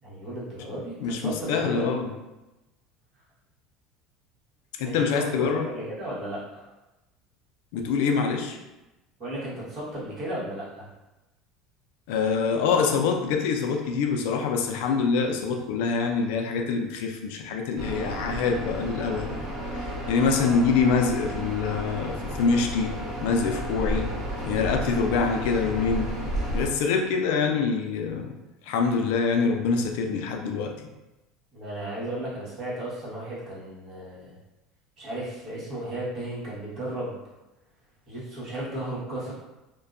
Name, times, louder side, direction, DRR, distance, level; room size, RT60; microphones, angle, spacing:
voice 1, 0.0-1.9 4.8-6.7 9.2-10.9 20.3-20.7 31.5-34.3 35.0-37.2 38.1-39.3, right 1 dB, 40° right, -8 dB, 1.2 m, -34 dB
voice 2, 1.0-2.1 4.8-5.7 7.7-8.6 12.1-19.5 19.7-22.9 23.2-24.1 24.4-26.1 26.5-28.3 28.7-30.9, left 5 dB, 80° left, 3 dB, 0.3 m, -25 dB
sound 1, 17.8-26.7, equal, 60° right, 1.0 m, -32 dB
2.6 x 2.2 x 2.4 m, 1.0 s
supercardioid pair, 130°, 0 cm